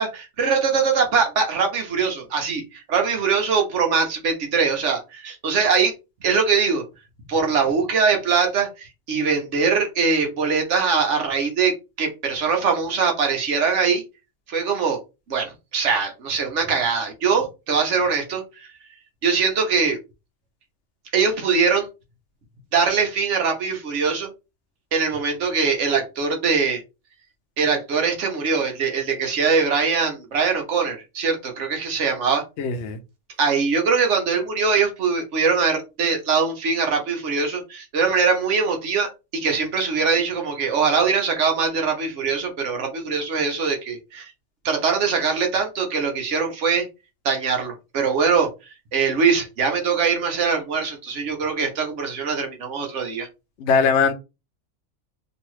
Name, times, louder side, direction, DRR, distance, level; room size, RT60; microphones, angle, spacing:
voice 1, 0.0-5.9 6.2-6.8 7.3-14.0 14.5-15.0 15.3-18.7 19.2-20.0 21.1-21.9 22.7-24.3 24.9-26.8 27.6-32.4 33.4-44.3 44.6-46.9 47.2-48.5 48.9-53.3, right 5 dB, 75° right, 1.2 m, -22 dB
voice 2, 32.6-33.0 53.6-54.1, left 5 dB, 70° left, 0.9 m, -20 dB
3.0 x 2.7 x 3.0 m
omnidirectional pair, 1.2 m